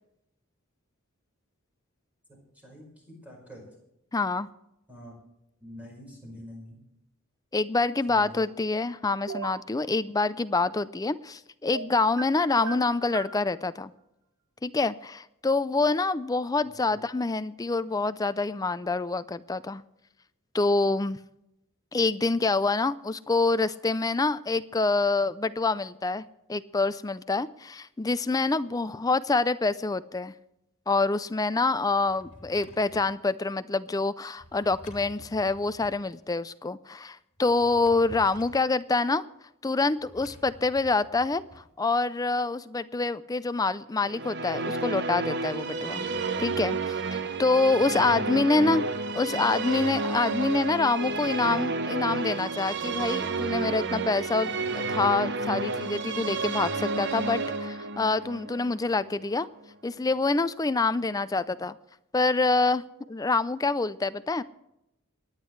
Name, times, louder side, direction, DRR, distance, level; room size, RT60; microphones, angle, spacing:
voice 1, 2.3-3.6 4.9-5.1 5.6-6.8 8.1-8.4 16.6-17.0 48.3-48.7, equal, 5° right, -1 dB, 4.9 m, -46 dB
voice 2, 4.1-4.5 7.5-13.9 14.6-19.8 20.5-21.2 21.9-30.3 30.9-39.2 39.6-46.1 46.4-48.8 49.2-59.5 59.8-61.8 62.1-62.8 63.1-64.4, left 3 dB, 15° left, 14 dB, 0.4 m, -26 dB
sound 1, 9.3-9.6 11.7-12.3 12.6-13.4, right 3 dB, 75° right, 1.2 m, -36 dB
Drawer open or close, 31.9-33.2 34.4-36.0 37.4-38.7 40.0-41.7, equal, 35° left, 2.9 m, -50 dB
Musical instrument, 44.0-59.5, right 3 dB, 55° right, 0.7 m, -31 dB
27.0 x 9.8 x 3.2 m, 0.84 s
head